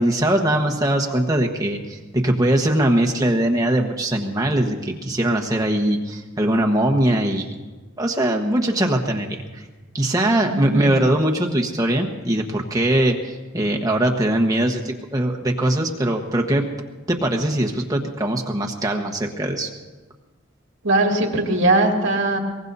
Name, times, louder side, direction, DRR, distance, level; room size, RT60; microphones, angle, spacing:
voice 1, 0.0-7.5 8.0-9.7 9.9-16.7 17.1-19.7, right 1 dB, 20° right, 1 dB, 1.2 m, -21 dB
voice 2, 10.5-11.0 20.8-22.4, right 2 dB, 65° right, 0 dB, 2.3 m, -20 dB
23.0 x 19.5 x 2.7 m, 1.3 s
head